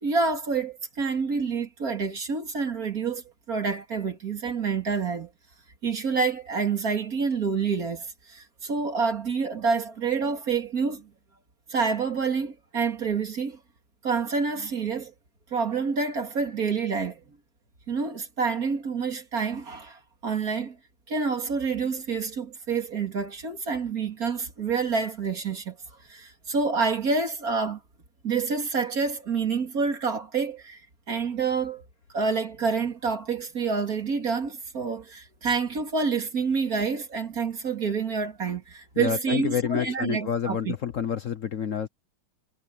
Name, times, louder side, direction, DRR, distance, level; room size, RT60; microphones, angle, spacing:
voice 1, 0.0-5.3 5.8-11.1 11.7-13.6 14.0-15.1 15.5-17.2 17.9-20.8 21.1-25.8 26.1-27.8 28.2-30.8 31.1-31.8 32.1-40.8, right 5 dB, 55° right, 3.0 m, -28 dB
voice 2, 39.0-41.9, left 8 dB, 55° left, 1.1 m, -28 dB
omnidirectional pair, 1.9 m